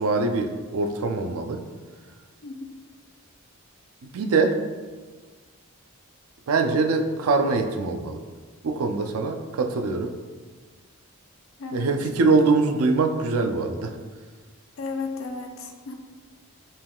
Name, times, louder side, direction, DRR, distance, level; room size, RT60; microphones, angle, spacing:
voice 1, 0.0-1.6 4.0-4.6 6.5-8.2 8.6-10.1 11.7-14.0, right 3 dB, 75° right, 5 dB, 0.4 m, -23 dB
voice 2, 11.6-11.9 14.8-15.9, left 4 dB, 60° left, 3 dB, 0.5 m, -34 dB
5.4 x 3.5 x 2.3 m, 1.4 s
head